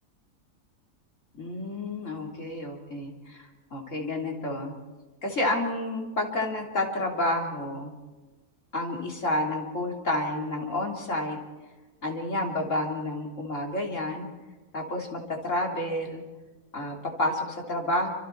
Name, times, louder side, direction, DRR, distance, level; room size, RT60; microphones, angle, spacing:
voice 1, 1.3-4.7 5.2-7.9 8.7-11.4 12.0-14.3 14.7-16.2 16.7-18.1, left 1 dB, 55° left, 0 dB, 3.5 m, -30 dB
28.5 x 26.0 x 4.6 m, 1.3 s
omnidirectional pair, 1.6 m